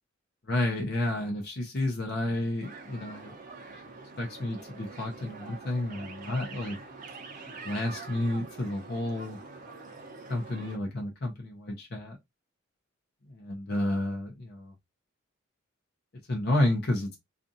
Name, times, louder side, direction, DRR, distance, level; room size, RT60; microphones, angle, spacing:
voice 1, 0.5-3.3 3.9-6.8 7.6-9.4 10.3-12.2 13.3-14.7 16.3-17.2, left 1 dB, 50° left, 0.7 m, -31 dB
sound 1, 2.6-10.8, right 3 dB, 40° right, 0.7 m, -45 dB
2.5 x 2.4 x 2.6 m
head